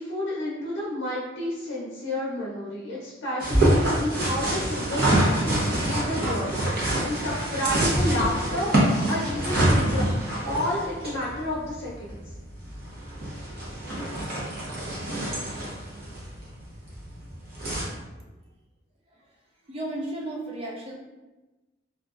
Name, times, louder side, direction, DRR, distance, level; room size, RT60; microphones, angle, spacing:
voice 1, 0.0-10.1 10.4-12.2, left 1 dB, 75° left, -7 dB, 0.6 m, -30 dB
sound 1, 3.4-17.8, right 1 dB, 50° right, 0.7 m, -26 dB
voice 2, 19.6-20.9, right 1 dB, 30° right, -2 dB, 0.4 m, -34 dB
2.8 x 2.4 x 2.4 m, 1.1 s
head